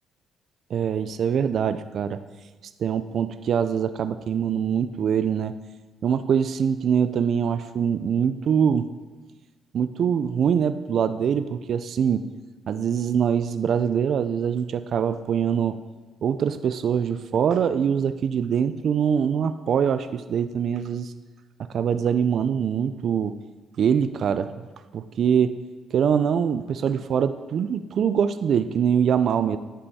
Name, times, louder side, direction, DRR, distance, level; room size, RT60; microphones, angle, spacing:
voice 1, 0.7-2.2 2.8-5.5 6.0-8.9 9.7-12.3 12.7-15.8 16.2-21.1 21.7-23.4 23.8-24.5 24.9-25.6 25.9-29.6, right 7 dB, 60° right, 12 dB, 0.3 m, -23 dB
9.9 x 5.4 x 4.1 m, 1.2 s
cardioid pair, 90°, 0 cm